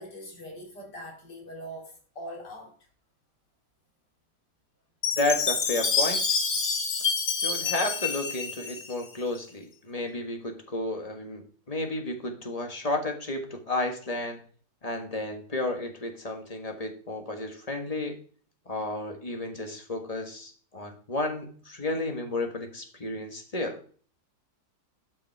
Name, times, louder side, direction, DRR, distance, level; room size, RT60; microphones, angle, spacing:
voice 1, 0.0-2.7, equal, 85° left, 3.4 m, -42 dB
Chime, 5.0-9.4, left 5 dB, 60° left, 1.8 m, -28 dB
voice 2, 5.1-6.4 7.4-14.4 14.8-18.2 18.6-23.8, left 2 dB, 25° left, 1.5 m, -32 dB
12.0 x 5.5 x 4.6 m
omnidirectional pair, 1.8 m